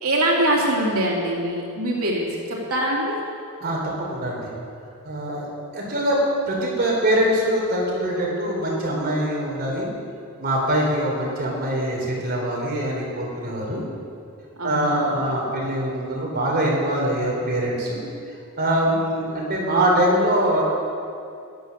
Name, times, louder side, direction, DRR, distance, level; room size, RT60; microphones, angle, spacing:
voice 1, 0.0-3.2 14.6-15.2 18.9-19.3, right 1 dB, 80° right, -3 dB, 3.0 m, -24 dB
voice 2, 3.6-4.5 5.0-5.5 5.7-9.9 10.4-13.8 14.6-18.0 18.6-20.6, right 1 dB, 45° right, -2 dB, 3.6 m, -23 dB
17.0 x 11.5 x 6.6 m, 2.5 s
head